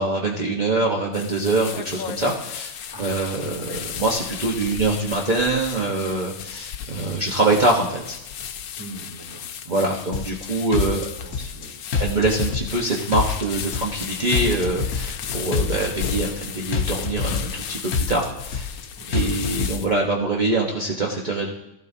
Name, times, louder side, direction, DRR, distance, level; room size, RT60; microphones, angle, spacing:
voice 1, 0.0-2.7 3.0-8.2 9.7-11.1 12.0-18.7 19.1-21.5, right 2 dB, 35° right, -2 dB, 1.2 m, -24 dB
sound 1, 1.1-20.0, left 8 dB, 90° left, 1.2 m, -35 dB
voice 2, 2.9-3.3 3.6-3.8 8.8-9.9 10.9-12.0 19.0-19.4, right 1 dB, 15° left, -2 dB, 2.8 m, -42 dB
sound 2, 10.1-10.4 10.7-11.6 11.9-12.8 13.1-14.0 14.3-15.2 15.5-16.4 16.7-17.6 17.9-18.8 19.1-19.7, left 5 dB, 60° left, 1.4 m, -26 dB
18.5 x 14.5 x 2.7 m, 0.90 s
omnidirectional pair, 1.5 m